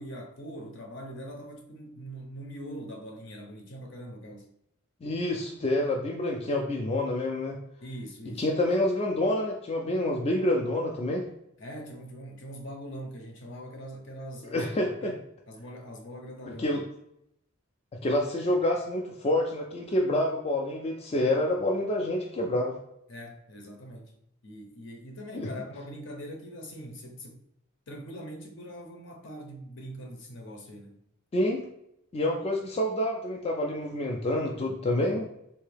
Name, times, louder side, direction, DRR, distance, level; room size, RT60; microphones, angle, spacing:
voice 1, 0.0-4.5 7.8-8.4 11.6-14.7 15.0-15.2 15.5-16.8 23.1-24.2 24.4-27.4 27.9-31.0, equal, 60° left, 0.7 m, -42 dB
voice 2, 5.0-7.6 8.4-11.3 14.5-15.1 16.6-16.8 18.0-22.7 25.3-25.5 31.3-31.6 32.1-35.3, left 1 dB, 30° left, 0.3 m, -27 dB
3.6 x 2.8 x 3.3 m
head